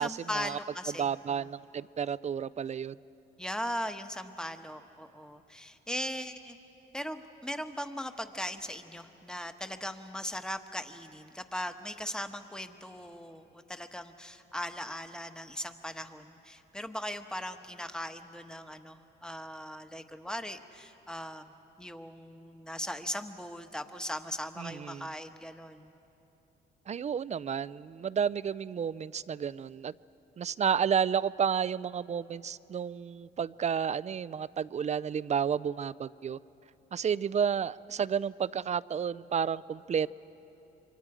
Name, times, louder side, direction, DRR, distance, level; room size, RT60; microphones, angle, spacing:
voice 1, 0.0-1.5 3.4-6.6 6.9-21.5 21.8-25.9, equal, 5° left, 8 dB, 1.1 m, -39 dB
voice 2, 1.0-2.9 24.6-25.1 26.9-29.9 30.4-36.4 36.9-40.1, right 7 dB, 35° right, 19 dB, 0.4 m, -31 dB
27.5 x 24.5 x 4.9 m, 2.9 s
cardioid pair, 90°, 20 cm